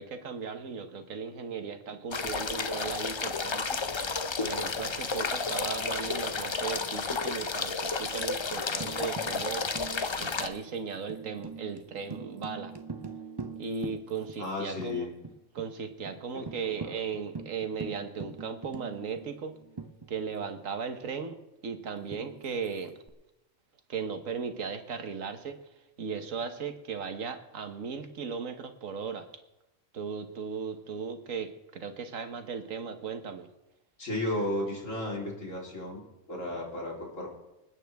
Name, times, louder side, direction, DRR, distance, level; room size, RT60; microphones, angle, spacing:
voice 1, 0.0-3.8 4.4-9.6 10.2-12.7 13.6-15.1 15.5-19.6 20.1-21.4 21.6-22.9 23.9-25.6 26.0-29.2 29.9-33.5, right 6 dB, 90° right, 7 dB, 1.6 m, -37 dB
sound 1, 2.1-10.5, left 4 dB, 35° left, 0.4 m, -32 dB
Tambourine, 8.8-14.5 14.8-14.9 15.2-15.7 16.0-16.2 16.5-20.6 22.1-23.1, right 4 dB, 25° right, 0.6 m, -43 dB
voice 2, 14.4-15.1 16.3-17.0 34.0-36.0 36.3-37.3, left 1 dB, 80° left, -3 dB, 4.1 m, -34 dB
26.0 x 9.1 x 3.5 m, 0.96 s
omnidirectional pair, 1.3 m